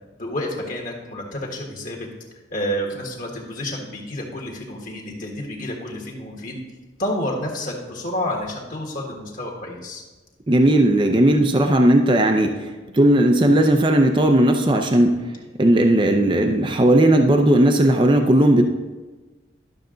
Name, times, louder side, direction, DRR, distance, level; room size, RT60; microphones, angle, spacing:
voice 1, 0.2-2.1 2.5-6.6 7.0-10.0, left 1 dB, 45° left, 0 dB, 1.6 m, -29 dB
voice 2, 10.5-12.7 12.9-15.1 15.6-18.7, right 1 dB, 25° right, 4 dB, 0.5 m, -16 dB
12.0 x 6.6 x 3.9 m, 1.2 s
head